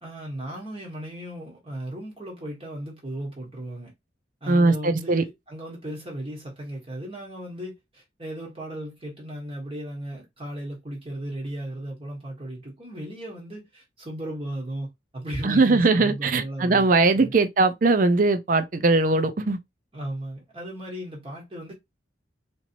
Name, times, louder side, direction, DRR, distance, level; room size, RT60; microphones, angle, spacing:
voice 1, 0.0-3.9 4.4-16.9 17.1-17.3 19.9-21.7, right 1 dB, 30° right, 1.4 m, -36 dB
voice 2, 4.5-5.2 15.4-19.6, right 3 dB, 45° right, 0.5 m, -20 dB
4.4 x 2.9 x 2.6 m
head